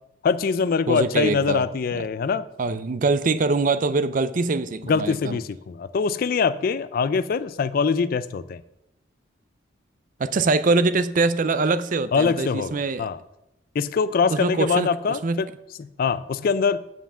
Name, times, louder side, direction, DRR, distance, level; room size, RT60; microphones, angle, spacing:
voice 1, 0.2-2.5 4.8-8.6 12.1-12.7 13.0-13.2 13.8-15.5 15.8-16.8, left 5 dB, 50° left, 14 dB, 0.3 m, -23 dB
voice 2, 0.9-1.6 2.6-5.4 10.2-13.1 14.3-15.5, right 3 dB, 45° right, 13 dB, 0.4 m, -23 dB
7.2 x 5.6 x 7.1 m, 0.89 s
head